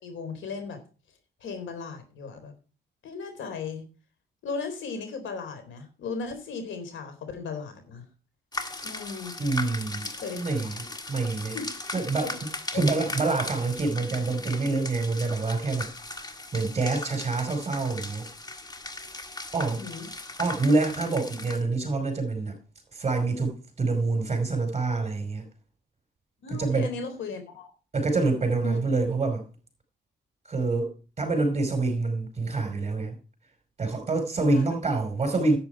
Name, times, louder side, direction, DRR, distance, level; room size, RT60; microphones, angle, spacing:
voice 1, 0.0-0.8 1.4-2.5 3.0-3.8 4.4-8.0 8.8-9.4 10.1-10.7 11.5-11.9 12.2-12.3 12.7-12.8 19.7-20.1 26.4-27.7 28.6-28.8 34.5-34.6, left 4 dB, 75° left, 3.9 m, -36 dB
sound 1, 8.5-21.6, left 2 dB, 20° left, 1.6 m, -38 dB
voice 2, 9.4-11.6 11.9-12.3 12.7-15.9 16.5-18.3 19.5-19.8 20.4-22.6 22.9-25.4 26.5-26.9 27.9-29.5 30.5-33.2 33.8-35.6, right 3 dB, 30° right, 5.3 m, -26 dB
10.5 x 9.0 x 4.8 m
cardioid pair, 90°, 20 cm